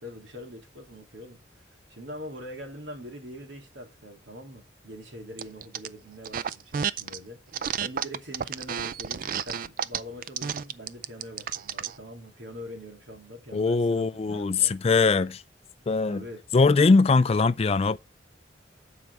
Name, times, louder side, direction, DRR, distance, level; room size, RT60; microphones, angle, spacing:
voice 1, 0.0-1.4 1.7-14.7 16.1-16.4, equal, 85° right, 2.7 m, -43 dB
sound 1, 5.4-5.9 6.2-7.2 7.5-12.0, right 8 dB, 50° right, 0.4 m, -31 dB
voice 2, 13.5-15.4 15.9-16.2 16.5-18.0, left 4 dB, 35° left, 0.3 m, -21 dB
8.9 x 4.7 x 4.7 m
head